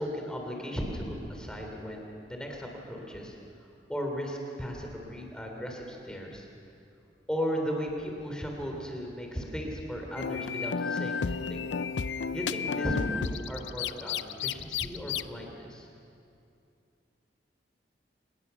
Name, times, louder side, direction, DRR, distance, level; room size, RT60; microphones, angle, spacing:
voice 1, 0.0-3.3 3.9-6.5 7.3-11.6 12.3-15.9, equal, 5° left, 1 dB, 3.4 m, -36 dB
sound 1, 10.2-15.2, left 6 dB, 80° left, 0.5 m, -32 dB
25.0 x 20.0 x 7.1 m, 2.6 s
head